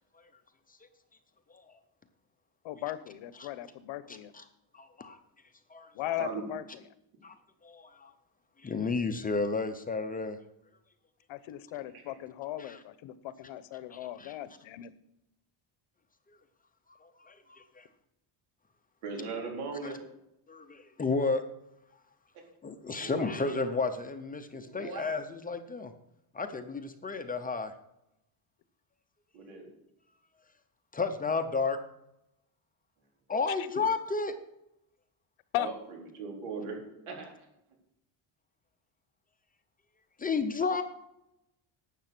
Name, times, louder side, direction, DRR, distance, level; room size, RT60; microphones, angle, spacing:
voice 1, 2.6-4.3 6.0-6.6 11.3-13.1 13.4-14.9 33.8-33.9 35.5-35.7, left 13 dB, 70° left, 15 dB, 1.0 m, -37 dB
voice 2, 4.1-4.4 4.7-5.2 5.7-5.9 7.2-7.3 7.6-8.1 8.6-10.4 12.6-12.8 13.9-14.3 17.2-17.8 20.5-21.4 22.6-25.9 26.3-27.7 30.9-31.8 33.3-34.3 40.2-40.8, left 4 dB, 20° left, 7 dB, 0.6 m, -32 dB
voice 3, 6.0-6.5 11.9-12.2 19.0-20.0 23.0-23.5 24.5-25.0 29.3-29.7 35.6-36.8 37.1-37.3, right 4 dB, 90° right, 0 dB, 4.2 m, -39 dB
12.0 x 8.2 x 6.0 m, 0.85 s
cardioid pair, 175°, 48 cm